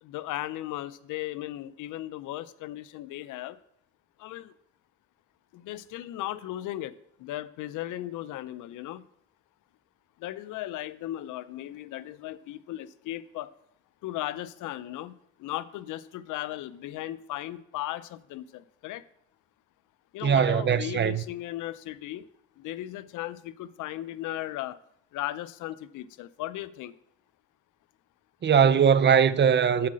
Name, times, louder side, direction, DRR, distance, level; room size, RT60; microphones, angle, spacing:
voice 1, 0.0-3.6 4.2-4.5 5.5-9.0 10.2-13.5 14.0-19.0 20.1-22.3 22.6-24.8 25.1-26.9, left 14 dB, 85° left, 0.6 m, -36 dB
voice 2, 20.2-21.2 28.4-29.9, right 7 dB, 35° right, 0.5 m, -21 dB
7.3 x 5.9 x 7.4 m
cardioid pair, 90°, 30 cm